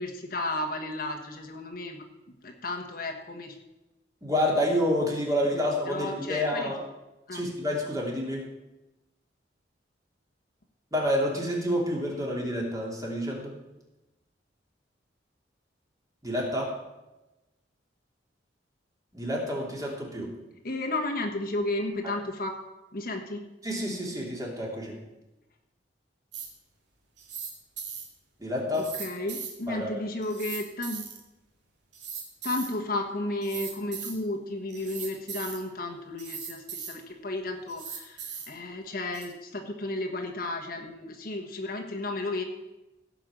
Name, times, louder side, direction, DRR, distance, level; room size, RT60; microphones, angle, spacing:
voice 1, 0.0-2.0 2.4-3.6 5.5-6.7 7.3-7.4 20.6-22.6 22.9-23.4 28.8-31.0 32.4-42.4, left 2 dB, 50° left, 2 dB, 1.3 m, -33 dB
voice 2, 4.2-6.8 7.3-8.4 10.9-13.5 16.2-16.7 19.1-20.3 23.6-24.9 28.4-28.8 29.7-30.0, left 1 dB, 20° right, -3 dB, 2.9 m, -28 dB
sound 1, 26.3-26.5 27.2-27.5 27.8-28.0 28.7-29.5 30.2-31.2 31.9-32.7 33.4-34.1 34.7-35.6 36.2-36.9 37.7-38.5 39.1-39.3, right 7 dB, 70° right, 2.4 m, -38 dB
16.5 x 5.5 x 7.5 m, 1.0 s
head